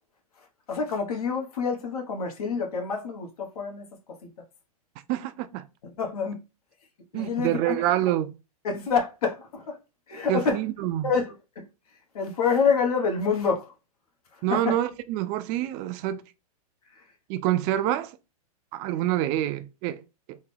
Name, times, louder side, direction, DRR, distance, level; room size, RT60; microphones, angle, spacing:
voice 1, 0.4-4.5 5.8-6.4 7.1-7.8 8.6-9.8 10.1-10.6 11.0-13.7 14.3-14.8 16.9-17.0, left 5 dB, 70° left, 1.2 m, -28 dB
voice 2, 5.1-5.7 7.1-8.4 10.3-11.1 14.4-16.2 17.3-18.2 18.7-20.0 20.3-20.4, right 13 dB, 35° right, 0.4 m, -27 dB
3.6 x 2.2 x 3.3 m
hypercardioid pair, 115°, 20 cm